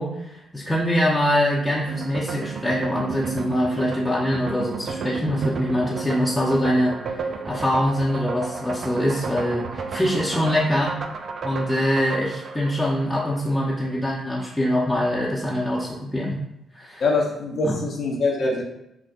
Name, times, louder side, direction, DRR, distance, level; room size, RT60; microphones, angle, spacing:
voice 1, 0.0-11.0 11.4-16.4 16.7-17.0 17.6-17.8, equal, 15° left, -6 dB, 0.8 m, -24 dB
sound 1, 1.9-13.6, right 5 dB, 55° right, 0.4 m, -32 dB
voice 2, 17.0-18.6, left 3 dB, 60° left, -1 dB, 0.9 m, -23 dB
5.8 x 2.1 x 2.5 m, 0.84 s
hypercardioid pair, 45°, 0 cm